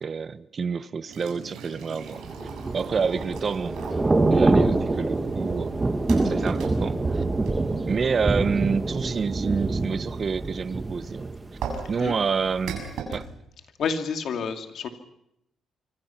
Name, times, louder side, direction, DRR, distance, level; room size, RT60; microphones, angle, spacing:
voice 1, 0.0-2.2 2.7-3.8 4.3-5.7 6.2-7.2 7.8-11.3 11.9-13.3, right 5 dB, 45° right, 1.0 m, -28 dB
sound 1, 1.1-8.8 11.6-13.2, right 6 dB, 85° right, 7.1 m, -39 dB
Thunder / Rain, 2.2-12.1 12.5-12.7, right 2 dB, 20° right, 1.6 m, -25 dB
voice 2, 13.8-14.9, left 6 dB, 65° left, 2.6 m, -29 dB
25.5 x 25.0 x 6.0 m
cardioid pair, 90°, 0 cm